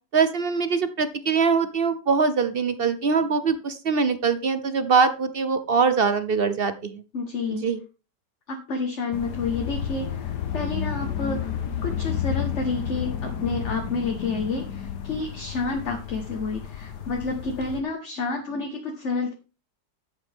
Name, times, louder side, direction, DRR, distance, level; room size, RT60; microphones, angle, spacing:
voice 1, 0.1-7.0 7.6-7.8, right 5 dB, 50° right, 11 dB, 0.7 m, -23 dB
voice 2, 7.1-7.6 8.5-19.3, left 3 dB, 45° left, 2 dB, 1.6 m, -30 dB
sound 1, 9.1-17.8, left 8 dB, 70° left, 1.7 m, -31 dB
11.0 x 7.9 x 3.5 m, 0.32 s
omnidirectional pair, 1.9 m